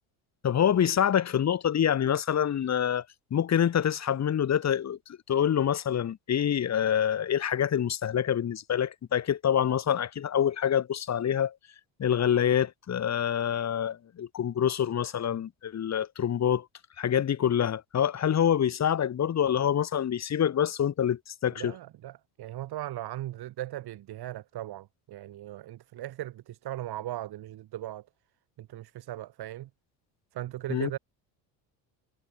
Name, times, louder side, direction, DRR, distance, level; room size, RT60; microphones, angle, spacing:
voice 1, 0.4-3.0 3.3-5.0 5.3-11.5 12.0-16.7 17.0-21.7 30.7-30.9, left 9 dB, 35° left, 2.1 m, -26 dB
voice 2, 21.5-28.1 28.6-29.7 30.3-31.0, right 14 dB, 55° right, 6.4 m, -38 dB
supercardioid pair, 105°, 45 cm